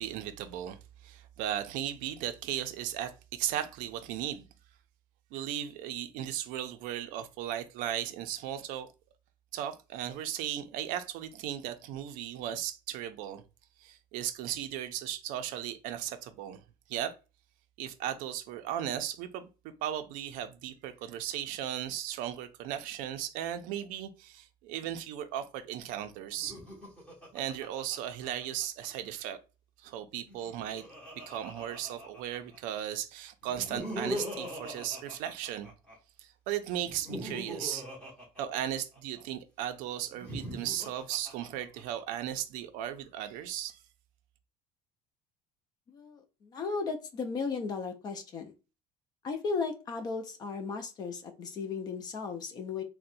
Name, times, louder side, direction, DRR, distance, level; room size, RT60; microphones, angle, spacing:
voice 1, 0.0-4.5 5.3-8.9 9.5-13.4 13.8-16.6 16.9-17.1 17.8-19.5 19.8-26.6 27.3-29.4 29.8-30.8 31.1-35.7 36.2-37.9 38.4-43.8, right 11 dB, 65° right, 0.4 m, -36 dB
Laughter, 26.3-28.9 30.2-32.6 33.4-36.0 36.8-39.2 40.1-42.0, left 1 dB, 10° left, 1.0 m, -41 dB
voice 2, 45.9-48.5 49.2-52.8, left 4 dB, 25° left, 0.3 m, -35 dB
4.0 x 2.1 x 2.5 m
cardioid pair, 175°, 15 cm